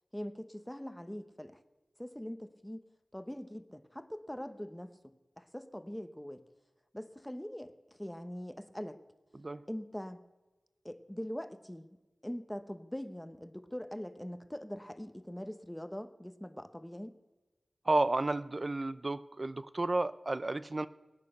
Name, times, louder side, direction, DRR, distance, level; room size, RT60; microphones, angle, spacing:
voice 1, 0.1-1.6 2.0-2.8 3.1-6.4 6.9-7.7 8.0-9.0 9.7-10.2 10.8-11.9 12.2-17.1, equal, 10° left, 10 dB, 1.0 m, -42 dB
voice 2, 17.9-20.9, right 2 dB, 45° right, 14 dB, 0.5 m, -32 dB
19.0 x 8.4 x 6.6 m, 1.1 s
cardioid pair, 45°, 0 cm